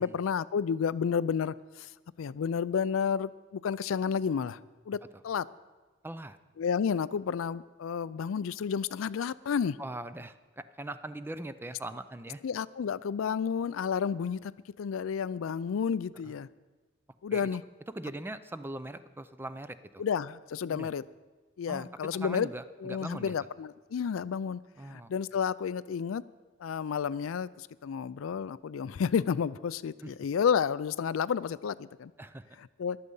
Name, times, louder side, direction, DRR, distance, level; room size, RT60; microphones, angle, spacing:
voice 1, 0.0-1.9 2.2-4.6 4.9-5.5 6.6-9.8 12.4-14.5 14.8-16.5 17.2-17.6 20.0-21.0 21.6-22.5 22.8-24.6 24.9-26.2 26.6-32.1 32.6-33.0, left 7 dB, 90° left, 17 dB, 0.4 m, -31 dB
voice 2, 6.0-6.4 9.8-12.4 16.2-16.3 17.3-17.5 17.9-20.0 20.7-20.9 21.7-21.9 22.1-22.6 22.9-23.4 24.8-25.1 30.0-30.1 32.2-32.5, right 1 dB, 10° right, 13 dB, 0.4 m, -41 dB
14.5 x 11.5 x 5.4 m, 1.3 s
head